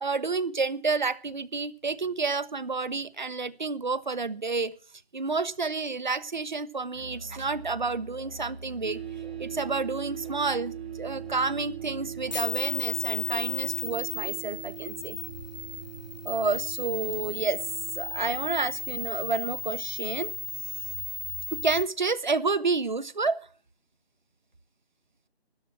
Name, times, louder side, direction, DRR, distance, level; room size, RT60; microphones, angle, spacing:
voice 1, 0.0-4.7 5.1-9.0 9.4-15.2 16.2-17.6 18.0-20.3 21.5-23.4, right 4 dB, 45° right, 16 dB, 1.0 m, -30 dB
Musical instrument, 6.9-12.5, right 2 dB, 65° right, 1.5 m, -44 dB
sound 1, 8.8-20.9, right 14 dB, 85° right, 3.9 m, -42 dB
sound 2, 12.3-21.8, left 4 dB, 45° left, 0.6 m, -35 dB
13.5 x 11.0 x 6.1 m, 0.39 s
figure-of-eight pair, 175°, 32 cm